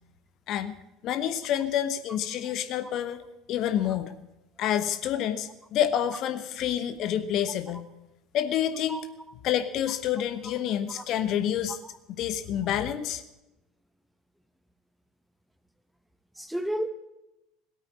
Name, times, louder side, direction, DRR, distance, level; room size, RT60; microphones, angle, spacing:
voice 1, 1.0-3.2 3.5-4.1 4.6-7.9 8.3-9.1 9.4-11.8 12.2-13.2, left 10 dB, 45° left, 11 dB, 1.0 m, -28 dB
voice 2, 16.4-16.9, equal, 5° right, 11 dB, 1.2 m, -32 dB
17.0 x 8.9 x 8.3 m, 0.92 s
figure-of-eight pair, 70°, 0 cm